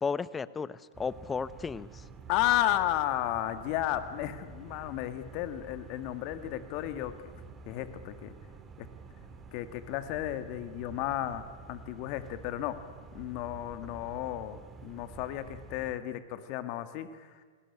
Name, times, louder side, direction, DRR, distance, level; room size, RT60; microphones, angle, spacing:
voice 1, 0.0-2.0, left 5 dB, 15° left, 18 dB, 0.9 m, -34 dB
sound 1, 0.9-15.9, right 4 dB, 20° right, 3.5 m, -49 dB
voice 2, 2.3-7.3 7.7-8.3 8.8-8.9 9.5-12.8 13.1-17.4, left 13 dB, 50° left, 10 dB, 1.9 m, -33 dB
27.5 x 20.0 x 9.9 m, 1.6 s
hypercardioid pair, 100°, 0 cm